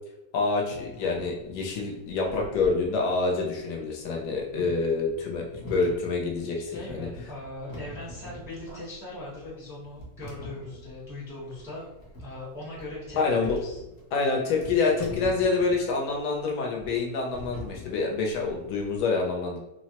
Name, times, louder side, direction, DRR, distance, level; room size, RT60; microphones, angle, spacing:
voice 1, 0.3-7.1 13.2-13.6 14.1-19.6, left 4 dB, 75° left, -1 dB, 1.1 m, -27 dB
sound 1, 0.7-19.0, left 1 dB, 55° left, 0.6 m, -45 dB
voice 2, 6.5-11.8 12.2-13.8, left 2 dB, 5° right, -7 dB, 0.5 m, -40 dB
3.3 x 2.0 x 2.8 m, 0.94 s
omnidirectional pair, 1.9 m